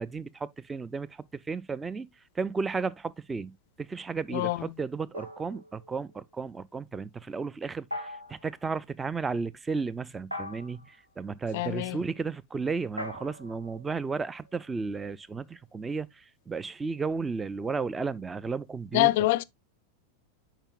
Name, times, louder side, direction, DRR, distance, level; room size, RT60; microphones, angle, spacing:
voice 1, 0.0-2.1 2.4-16.1 16.5-19.1, right 4 dB, 15° right, 0.4 m, -33 dB
voice 2, 4.3-4.7 11.5-12.0 18.9-19.4, left 18 dB, 50° left, 0.4 m, -25 dB
sound 1, 5.1-6.2 7.9-8.5 10.3-11.0 13.0-14.7, left 1 dB, 90° right, 1.1 m, -41 dB
8.8 x 5.1 x 2.3 m
figure-of-eight pair, 90°, 0 cm